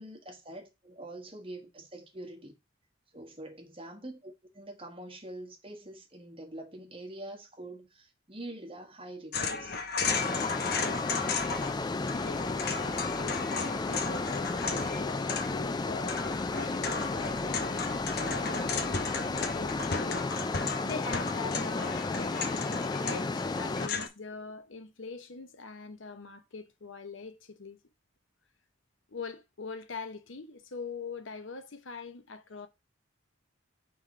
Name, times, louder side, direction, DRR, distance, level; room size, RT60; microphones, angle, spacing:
voice 1, 0.0-2.5 3.1-9.8, right 1 dB, 30° right, 1.4 m, -45 dB
sound 1, 9.3-11.8 12.0-24.1, left 5 dB, 55° left, 0.8 m, -35 dB
sound 2, 10.1-23.9, left 3 dB, 20° left, 0.3 m, -33 dB
sound 3, 11.4-20.2, right 2 dB, 10° right, 1.0 m, -53 dB
voice 2, 12.1-22.4 23.0-27.8 29.1-32.7, left 4 dB, 80° left, 0.9 m, -43 dB
4.8 x 3.9 x 5.7 m
head